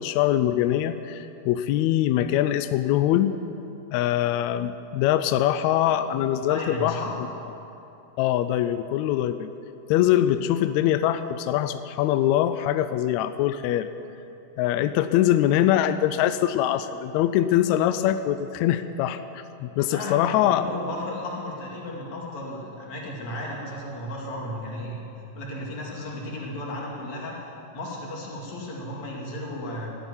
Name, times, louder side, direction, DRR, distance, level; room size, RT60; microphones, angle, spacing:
voice 1, 0.0-3.3 3.9-7.0 8.2-9.5 9.9-13.9 14.6-20.6, left 12 dB, 80° left, 11 dB, 1.6 m, -23 dB
voice 2, 6.5-7.1 19.9-30.0, left 1 dB, 60° left, -3 dB, 3.8 m, -34 dB
13.5 x 10.0 x 9.8 m, 2.9 s
omnidirectional pair, 3.7 m